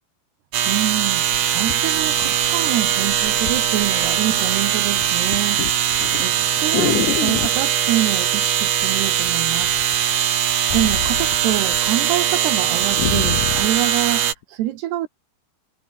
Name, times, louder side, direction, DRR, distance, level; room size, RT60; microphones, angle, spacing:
sound 1, 0.5-14.3, right 10 dB, 55° right, 3.2 m, -20 dB
sound 2, 0.7-0.8 1.3-2.8 3.5-3.7 4.0-4.5 4.8-7.7 8.8-9.3 9.6-11.9 12.2-12.3 12.6-13.8 14.4-14.5, left 11 dB, 60° left, 2.4 m, -27 dB
voice 1, 0.7-1.3 1.5-5.6 6.0-9.8 10.7-15.1, right 14 dB, 75° right, 3.3 m, -26 dB
sound 3, 1.2-7.0, right 2 dB, 25° right, 7.7 m, -46 dB
omnidirectional pair, 4.9 m